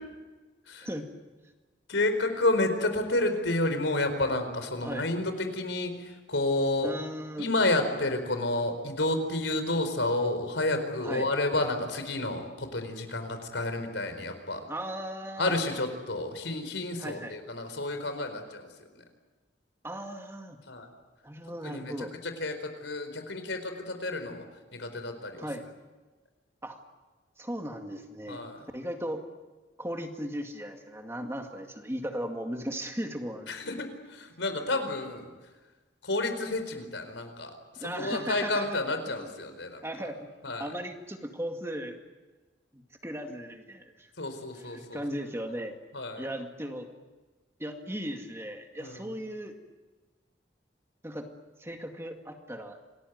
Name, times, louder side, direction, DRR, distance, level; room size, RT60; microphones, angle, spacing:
voice 1, 1.9-5.9 6.3-6.9 7.4-14.6 15.4-18.7 20.7-20.9 21.6-21.9 22.4-24.4 24.7-25.4 28.3-28.6 33.5-33.7 34.1-35.3 36.0-37.5 37.8-39.8 40.4-40.7 44.2-45.0 45.9-46.3 48.8-49.1, left 2 dB, 80° left, 7 dB, 4.6 m, -30 dB
voice 2, 6.8-7.5 11.0-11.3 14.7-15.5 17.0-17.4 19.8-20.6 21.2-22.1 25.4-25.7 26.6-26.8 27.4-28.4 28.7-29.2 29.8-33.5 37.8-38.8 39.2-39.3 39.8-42.0 42.7-44.1 44.6-45.8 46.2-46.9 47.6-49.5 51.0-51.3 51.6-52.8, equal, 15° right, 4 dB, 2.1 m, -37 dB
28.0 x 19.5 x 9.4 m, 1.3 s
head